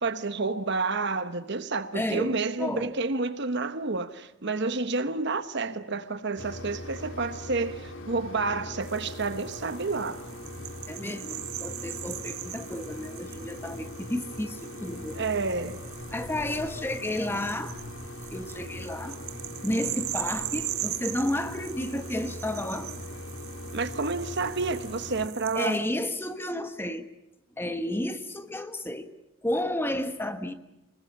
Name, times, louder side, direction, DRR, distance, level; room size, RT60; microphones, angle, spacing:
voice 1, 0.0-10.2 15.1-15.8 23.7-25.8, right 3 dB, 55° right, 1.1 m, -29 dB
voice 2, 1.9-2.9 10.9-15.3 16.1-17.8 18.3-19.2 19.6-22.9 25.5-27.1 27.6-29.1 29.4-30.5, left 1 dB, 10° left, 1.2 m, -32 dB
Mechanisms, 6.4-25.3, left 1 dB, 60° left, 3.2 m, -41 dB
sound 1, 8.8-25.8, right 14 dB, 85° right, 1.2 m, -40 dB
26.0 x 20.5 x 8.6 m
head